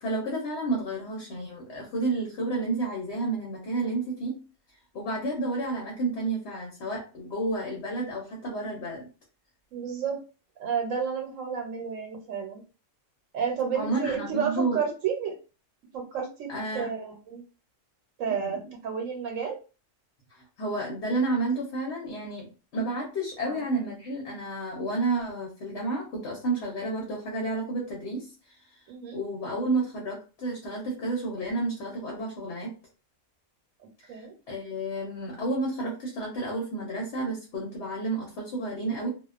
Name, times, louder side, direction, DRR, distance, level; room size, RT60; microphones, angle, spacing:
voice 1, 0.0-4.4 4.9-9.1 13.7-14.8 16.5-16.9 18.3-18.6 20.3-22.5 22.7-28.5 29.1-32.7 34.1-39.1, right 2 dB, 60° left, -2 dB, 1.0 m, -31 dB
voice 2, 9.7-10.2 10.6-12.6 13.3-15.3 15.9-17.4 18.2-19.6 23.4-23.6 28.9-29.2 34.1-34.3, right 7 dB, 80° right, 3 dB, 1.1 m, -31 dB
2.3 x 2.2 x 2.4 m, 0.33 s
omnidirectional pair, 1.4 m